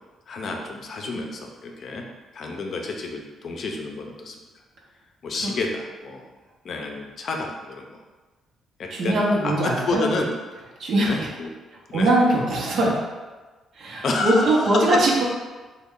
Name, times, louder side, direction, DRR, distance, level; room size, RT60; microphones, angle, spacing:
voice 1, 0.3-2.0 2.3-4.4 5.2-6.2 6.6-7.9 8.8-9.2 9.4-10.3 11.1-11.5 11.9-12.1 14.0-15.0, left 3 dB, 55° left, 1 dB, 0.5 m, -29 dB
voice 2, 8.9-10.0 10.8-11.3 11.9-13.0 13.8-15.2, right 1 dB, 65° right, -3 dB, 0.8 m, -21 dB
3.1 x 2.2 x 3.6 m, 1.3 s
cardioid pair, 90°, 0 cm